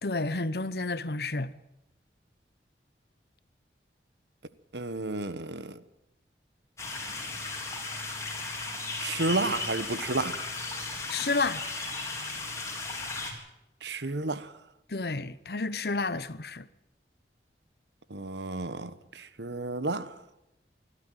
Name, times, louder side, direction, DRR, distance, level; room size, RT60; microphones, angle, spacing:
voice 1, 0.0-1.5 11.1-11.6 14.9-16.7, left 3 dB, 65° left, 1.0 m, -30 dB
voice 2, 4.7-5.8 9.0-10.4 13.8-14.5 18.1-20.1, right 2 dB, 85° right, 1.2 m, -32 dB
sound 1, 6.8-13.3, left 3 dB, 15° left, 3.8 m, -35 dB
24.5 x 13.0 x 9.3 m
head